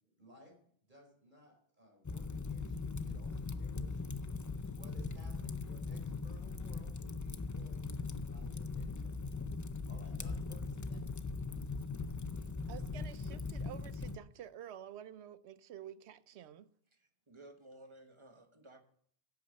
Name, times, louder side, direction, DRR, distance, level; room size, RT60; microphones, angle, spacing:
voice 1, 0.2-0.5 0.9-4.2 4.5-8.0 8.3-11.3, equal, 45° right, 4.7 m, -60 dB
Fire, 2.0-14.2, left 4 dB, 30° left, 0.3 m, -40 dB
voice 2, 12.7-16.7, right 10 dB, 85° right, 0.9 m, -50 dB
voice 3, 16.9-18.8, right 1 dB, 30° right, 1.4 m, -56 dB
11.0 x 8.7 x 6.5 m
omnidirectional pair, 1.1 m